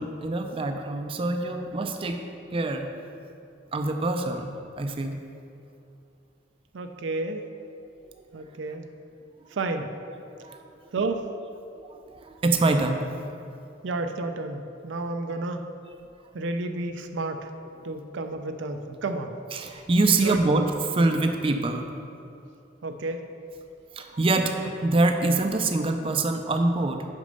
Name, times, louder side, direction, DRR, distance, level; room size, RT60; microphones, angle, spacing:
voice 1, 0.0-2.2 2.5-2.9 3.7-5.2 10.4-10.6 11.8-13.1 19.5-20.7 20.9-21.9 24.0-27.1, right 2 dB, 30° right, 5 dB, 0.4 m, -25 dB
voice 2, 6.7-7.4 8.3-8.9 9.5-9.9 10.9-11.3 13.8-15.6 16.3-17.5 17.8-19.3 20.2-20.6 22.8-23.3, right 2 dB, 90° right, 6 dB, 0.5 m, -31 dB
6.4 x 5.2 x 5.3 m, 2.6 s
head